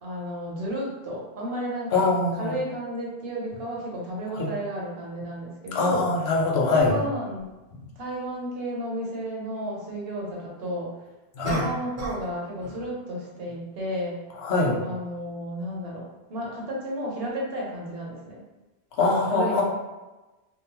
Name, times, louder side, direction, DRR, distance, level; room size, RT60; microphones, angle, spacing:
voice 1, 0.0-2.0 2.4-6.1 6.7-7.5 8.0-10.9 11.5-14.2 14.8-18.4 19.0-19.6, equal, 75° right, -3 dB, 1.0 m, -32 dB
voice 2, 1.9-2.6 4.4-4.5 5.7-7.0 11.4-11.6 14.4-14.8 19.0-19.6, left 3 dB, 85° left, -1 dB, 0.9 m, -23 dB
sound 1, 7.4-7.5 11.4-12.3 12.6-12.9, equal, 15° right, 0.7 m, -34 dB
2.8 x 2.0 x 2.9 m, 1.1 s
omnidirectional pair, 1.0 m